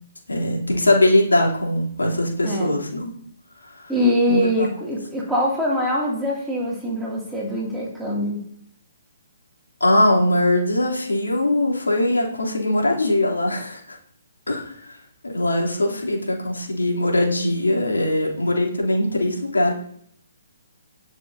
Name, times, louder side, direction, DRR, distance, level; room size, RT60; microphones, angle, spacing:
voice 1, 0.3-3.1 3.7-3.9 4.3-4.7 9.8-13.8 14.5-15.0 15.2-19.7, left 1 dB, 75° left, -2 dB, 3.1 m, -21 dB
voice 2, 2.4-2.8 3.9-8.4, equal, 5° right, -5 dB, 2.5 m, -23 dB
18.0 x 6.4 x 2.8 m, 0.65 s
figure-of-eight pair, 130°, 0 cm